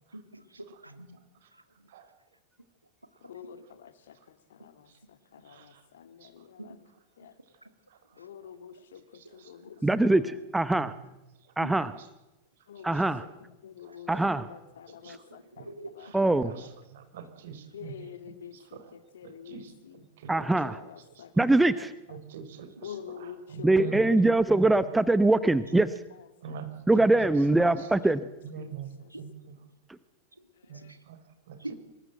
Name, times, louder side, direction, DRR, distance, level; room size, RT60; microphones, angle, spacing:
voice 1, 0.1-1.2 1.5-1.6 6.6-6.8 7.6-7.7 8.1-8.3 9.6-9.9 11.6-11.8 12.8-12.9 14.1-14.2 15.1-16.2 22.8-22.9 29.1-29.3 30.7-31.0 31.6-31.7, right 1 dB, 85° right, 11 dB, 1.8 m, -45 dB
voice 2, 3.2-4.2 4.5-4.9 5.3-6.7 7.2-7.3 8.2-9.0 9.3-10.0 12.7-13.0 13.4-14.1 14.5-15.7 16.0-16.1 16.4-16.7 17.7-20.0 20.6-21.3 21.7-21.9 22.8-24.2 27.8-28.0 28.6-28.7 29.0-29.1 30.7-30.9, left 8 dB, 60° left, 11 dB, 2.1 m, -47 dB
voice 3, 9.8-10.9 11.6-11.9 12.8-13.2 14.1-14.5 16.1-16.5 20.3-20.8 21.4-21.9 23.6-25.9 26.9-28.2, right 2 dB, 5° right, 15 dB, 0.8 m, -23 dB
voice 4, 16.9-17.9 18.5-18.9 19.2-19.7 20.2-20.4 21.3-21.4 22.3-24.1 24.8-24.9 26.4-26.7 27.0-27.1 28.4-28.9 29.2-29.3 30.7-30.8 31.1-31.2 31.5-31.6, right 8 dB, 55° right, 8 dB, 3.8 m, -42 dB
24.5 x 20.5 x 7.8 m, 1.0 s
figure-of-eight pair, 90°, 0 cm